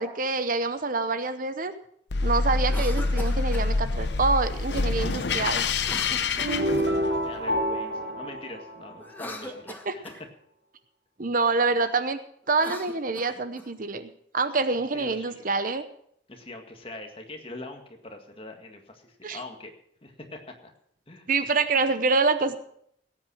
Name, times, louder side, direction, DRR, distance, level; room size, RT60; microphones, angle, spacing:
voice 1, 0.0-1.7 2.2-5.7 9.9-10.0 11.2-12.2 12.5-15.8 19.2-19.4 21.3-22.6, right 3 dB, 45° right, 11 dB, 0.8 m, -26 dB
sound 1, 2.1-7.4, left 3 dB, 60° left, 0.8 m, -26 dB
Cough, 2.6-3.7 5.8-7.1 9.0-10.2 12.5-13.7, left 1 dB, 10° left, 1.2 m, -41 dB
voice 2, 6.1-6.6 7.2-10.1 14.9-15.4 16.3-19.7 20.0-20.7 21.1-21.3, left 2 dB, 30° left, 4 dB, 1.8 m, -43 dB
sound 2, 6.4-9.4, equal, 65° right, 2.6 m, -28 dB
17.0 x 8.8 x 6.1 m, 0.68 s
head